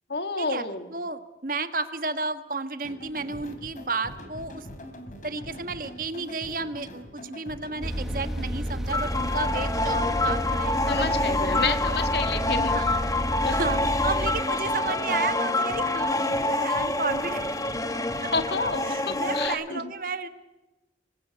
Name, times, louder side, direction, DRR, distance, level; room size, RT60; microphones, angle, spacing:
voice 1, 0.1-0.9 10.9-12.7 13.4-13.6 18.2-19.9, left 4 dB, 70° left, 9 dB, 1.6 m, -30 dB
voice 2, 0.9-4.7 5.2-12.0 12.7-12.9 13.5-17.5 18.2-18.3 18.9-20.3, right 3 dB, 50° right, 10 dB, 1.4 m, -32 dB
sound 1, 2.8-19.5, left 1 dB, 45° left, 3.2 m, -43 dB
sound 2, 7.8-14.4, equal, ahead, 1.4 m, -31 dB
sound 3, 8.9-19.5, left 2 dB, 20° left, 1.3 m, -27 dB
26.0 x 20.0 x 8.1 m, 1.1 s
head